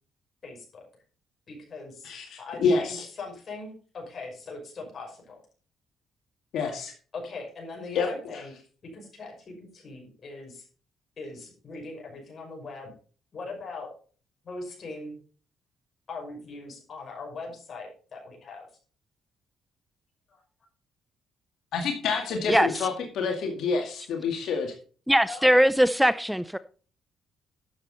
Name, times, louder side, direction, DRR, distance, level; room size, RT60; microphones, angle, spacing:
voice 1, 0.4-0.8 1.5-5.4 7.1-8.5 8.9-10.7 11.2-12.9 13.3-13.9 14.4-15.2 16.1-18.7 20.3-20.4 25.2-25.5, left 3 dB, 50° left, 1 dB, 5.8 m, -40 dB
voice 2, 2.0-3.0 6.5-6.9 7.9-8.1 21.7-24.7, left 5 dB, 75° left, 2 dB, 2.1 m, -27 dB
voice 3, 25.1-26.6, equal, ahead, 15 dB, 0.5 m, -20 dB
11.5 x 7.4 x 4.1 m, 0.39 s
cardioid pair, 90°, 0 cm